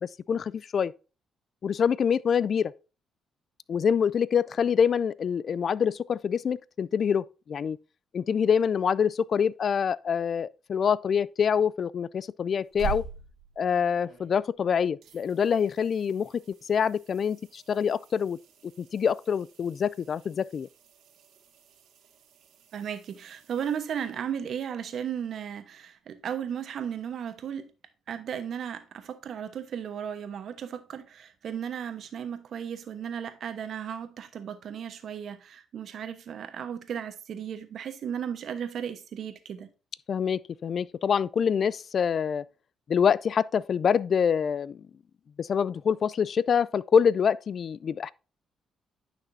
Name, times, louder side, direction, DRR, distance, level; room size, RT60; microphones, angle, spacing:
voice 1, 0.0-0.9 1.6-2.7 3.7-7.8 8.1-13.0 13.6-16.4 16.7-18.4 18.8-20.7 40.1-42.4 42.9-44.9 45.4-48.1, left 7 dB, 50° left, 0.3 m, -26 dB
sound 1, 12.5-14.6 15.0-24.6 27.4-27.5, right 7 dB, 85° right, 1.6 m, -45 dB
voice 2, 22.7-27.7 28.1-39.7, right 8 dB, 65° right, 1.0 m, -35 dB
9.9 x 5.9 x 2.6 m
cardioid pair, 90°, 0 cm